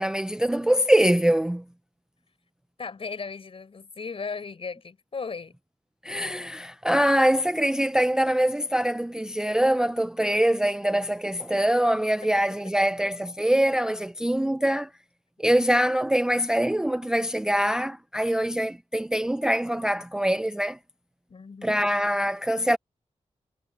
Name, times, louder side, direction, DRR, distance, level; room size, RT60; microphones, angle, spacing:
voice 1, 0.0-1.6 6.0-14.9 15.4-20.8 21.6-22.8, right 1 dB, 5° right, 0.4 m, -24 dB
voice 2, 2.8-5.6 12.2-12.3 21.3-21.9, left 5 dB, 50° left, 6.5 m, -36 dB
wide cardioid pair, 180°, 12 cm